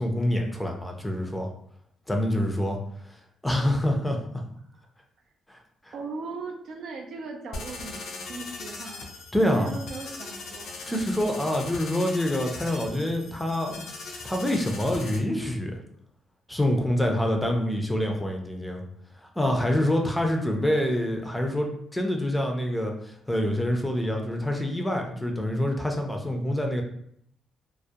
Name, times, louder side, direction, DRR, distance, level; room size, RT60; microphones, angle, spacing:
voice 1, 0.0-1.5 2.1-2.8 3.4-4.2 5.5-5.6 5.9-6.0 9.3-9.7 10.9-13.9 14.2-15.8 16.5-18.8 19.2-26.8, left 1 dB, 5° left, 2 dB, 0.4 m, -26 dB
voice 2, 5.9-9.1 9.4-11.2, right 4 dB, 70° right, 3 dB, 0.4 m, -39 dB
sound 1, 7.5-15.2, left 3 dB, 70° left, 0.4 m, -40 dB
2.3 x 2.0 x 2.7 m, 0.69 s
cardioid pair, 90°, 0 cm